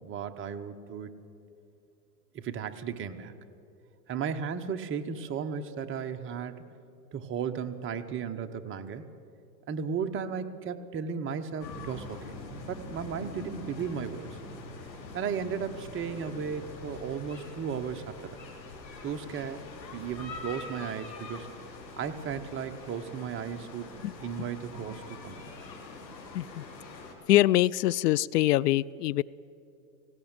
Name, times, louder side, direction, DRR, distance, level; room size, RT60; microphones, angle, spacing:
voice 1, 0.0-1.2 2.3-3.3 4.1-6.6 7.1-9.0 9.7-12.3 12.7-14.4 15.1-18.4 19.0-19.6 19.9-21.5 22.0-23.9 24.2-25.4, right 7 dB, 25° right, 7 dB, 1.0 m, -35 dB
sound 1, 11.6-27.1, left 3 dB, 90° left, 4.0 m, -44 dB
voice 2, 27.3-29.2, left 15 dB, 70° left, 21 dB, 0.6 m, -24 dB
18.5 x 17.0 x 8.9 m, 2.5 s
hypercardioid pair, 125°, 50 cm